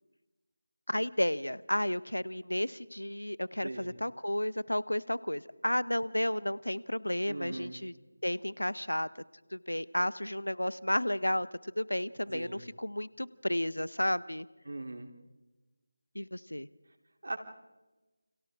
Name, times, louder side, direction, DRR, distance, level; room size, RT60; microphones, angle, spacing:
voice 1, 0.9-7.9 8.2-9.1 9.5-14.5 16.1-16.7, left 1 dB, 75° left, 19 dB, 0.9 m, -32 dB
voice 2, 3.6-3.9 7.3-7.8 12.3-12.6 14.7-15.1 17.2-17.4, right 2 dB, 55° right, 4 dB, 3.2 m, -39 dB
30.0 x 28.0 x 3.7 m, 1.1 s
figure-of-eight pair, 160°, 0 cm